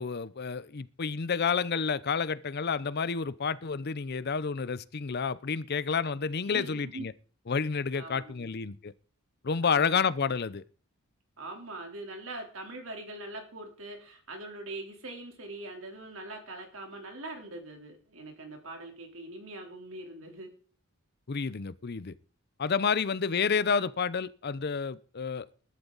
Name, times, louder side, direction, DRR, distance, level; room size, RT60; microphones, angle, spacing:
voice 1, 0.0-7.1 7.5-8.9 9.4-10.6 21.3-22.1 22.6-25.5, left 5 dB, 50° left, 0.6 m, -30 dB
voice 2, 6.5-7.0 7.9-8.5 9.6-10.0 11.4-20.5, right 2 dB, 70° right, 3.5 m, -42 dB
20.5 x 11.5 x 4.0 m
head